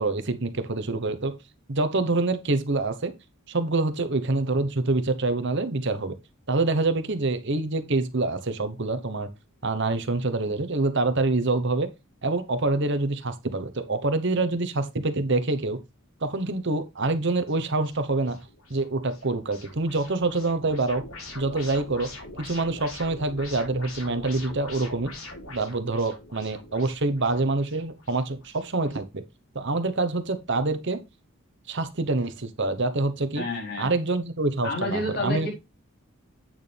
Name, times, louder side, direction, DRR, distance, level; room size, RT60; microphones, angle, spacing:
voice 1, 0.0-1.3 1.7-3.1 3.5-6.1 6.5-9.3 9.6-11.9 12.2-15.8 16.2-18.4 18.7-21.0 21.3-22.1 22.4-25.1 25.5-29.2 29.5-31.0 31.7-33.4 33.8-35.5, right 2 dB, 55° right, 1.0 m, -26 dB
sound 1, 17.5-29.0, left 2 dB, 80° left, 3.7 m, -44 dB
voice 2, 33.3-33.9 34.6-35.5, left 1 dB, 45° left, 4.4 m, -29 dB
8.8 x 6.4 x 3.4 m
head